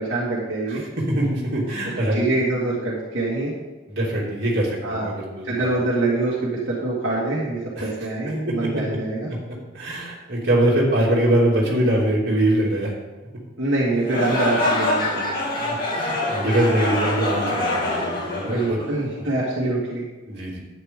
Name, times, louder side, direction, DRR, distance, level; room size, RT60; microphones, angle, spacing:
voice 1, 0.0-0.8 2.1-3.5 4.8-5.1 5.4-9.3 13.6-15.4 18.4-20.1, right 2 dB, 80° right, -6 dB, 2.1 m, -24 dB
voice 2, 0.7-2.3 3.9-5.7 7.8-7.9 8.3-8.8 9.3-9.4 9.7-12.9 15.6-18.8 20.3-20.6, right 1 dB, 60° right, -4 dB, 2.9 m, -23 dB
sound 1, 14.0-19.2, left 2 dB, 50° left, 2.5 m, -25 dB
11.0 x 9.1 x 3.7 m, 1.2 s
head